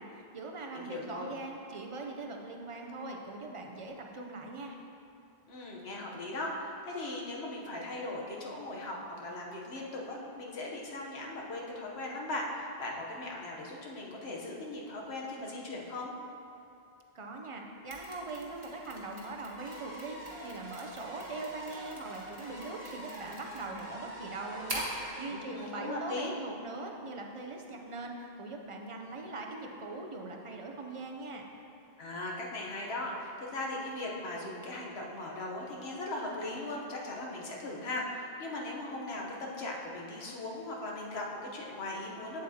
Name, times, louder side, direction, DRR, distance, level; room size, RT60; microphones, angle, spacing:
voice 1, 0.0-4.8 17.1-31.4, right 3 dB, 40° right, 2 dB, 0.6 m, -41 dB
voice 2, 0.7-1.3 5.5-16.1 25.3-26.3 32.0-42.4, left 2 dB, 90° left, -2 dB, 1.2 m, -39 dB
Mechanisms, 17.9-25.1, right 1 dB, 25° right, 1.1 m, -45 dB
sound 1, 19.6-26.5, right 1 dB, 70° right, 1.8 m, -47 dB
8.1 x 7.6 x 2.8 m, 2.7 s
omnidirectional pair, 1.0 m